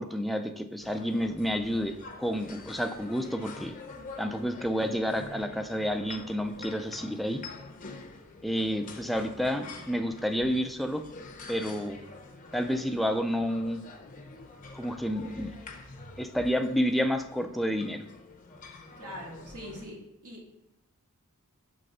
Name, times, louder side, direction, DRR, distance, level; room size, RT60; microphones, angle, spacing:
voice 1, 0.0-3.7 4.2-7.4 8.4-11.0 11.5-12.0 12.5-13.8 14.7-15.6 16.2-18.0, equal, ahead, 5 dB, 0.4 m, -30 dB
sound 1, 0.8-19.9, left 3 dB, 40° left, 0.7 m, -46 dB
voice 2, 19.0-20.0 20.2-20.5, equal, 85° right, -2 dB, 2.0 m, -42 dB
6.3 x 3.3 x 5.3 m, 0.87 s
head